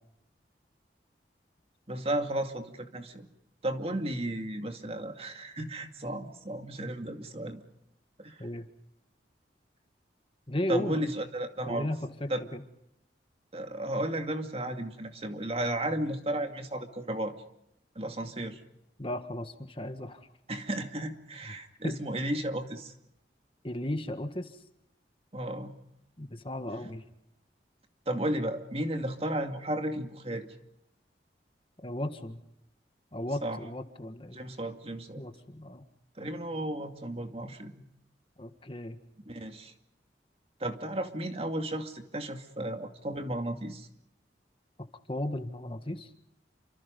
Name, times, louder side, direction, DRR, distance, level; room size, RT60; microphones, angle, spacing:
voice 1, 1.9-3.3 3.6-7.6 8.2-8.5 10.7-11.9 12.3-12.4 13.5-17.3 18.0-18.6 20.5-22.9 25.3-25.7 28.1-30.5 33.4-33.6 34.3-35.2 36.2-37.8 39.3-39.7 40.6-43.9, right 1 dB, 35° right, 5 dB, 2.3 m, -34 dB
voice 2, 10.5-11.0 11.7-12.6 19.0-20.3 21.5-21.6 21.8-22.0 23.6-24.6 26.2-27.0 31.8-32.4 33.1-34.4 35.1-35.8 38.4-39.0 45.1-46.1, left 1 dB, 30° left, 7 dB, 1.7 m, -35 dB
29.0 x 26.0 x 5.4 m, 0.83 s
head